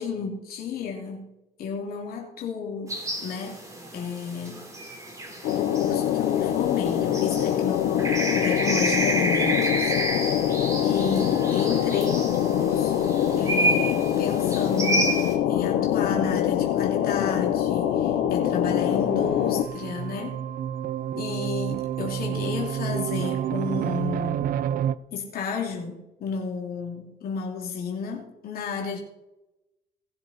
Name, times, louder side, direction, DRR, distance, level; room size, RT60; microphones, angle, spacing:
voice 1, 0.0-1.3 1.6-2.9 3.2-3.6 3.9-4.6 5.5-10.4 10.8-20.4 21.1-24.5 25.1-29.0, left 5 dB, 65° left, 0 dB, 2.7 m, -32 dB
sound 1, 2.9-15.3, right 2 dB, 20° right, 3.5 m, -30 dB
sound 2, 5.4-19.6, left 11 dB, 90° left, 1.0 m, -24 dB
sound 3, 10.7-24.9, right 10 dB, 60° right, 0.6 m, -33 dB
19.0 x 7.3 x 4.2 m, 0.95 s
cardioid pair, 110°, 17 cm